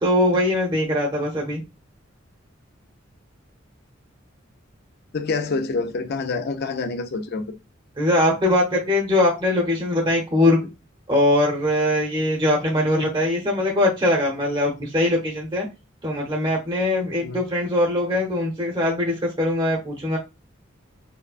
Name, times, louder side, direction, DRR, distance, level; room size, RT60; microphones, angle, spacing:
voice 1, 0.0-1.6 8.0-10.6 11.1-15.7 16.0-20.2, left 1 dB, 25° right, 0.8 m, -21 dB
voice 2, 5.1-7.4 17.2-17.4, left 3 dB, 55° left, 0.5 m, -27 dB
4.8 x 2.2 x 2.4 m
head